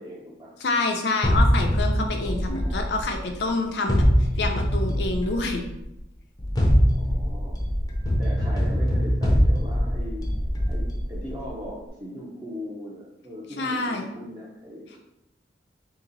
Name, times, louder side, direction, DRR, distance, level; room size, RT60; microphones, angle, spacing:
voice 1, 0.0-0.5 2.2-3.0 6.9-7.6 8.2-10.3 10.7-15.0, equal, 25° right, -6 dB, 0.7 m, -39 dB
voice 2, 0.6-4.0 4.4-5.7 13.6-14.1, left 3 dB, 65° left, 3 dB, 0.6 m, -27 dB
sound 1, 1.2-3.4 3.9-5.7 6.4-11.5, equal, 20° left, 0.6 m, -23 dB
3.5 x 2.9 x 3.9 m, 0.89 s
head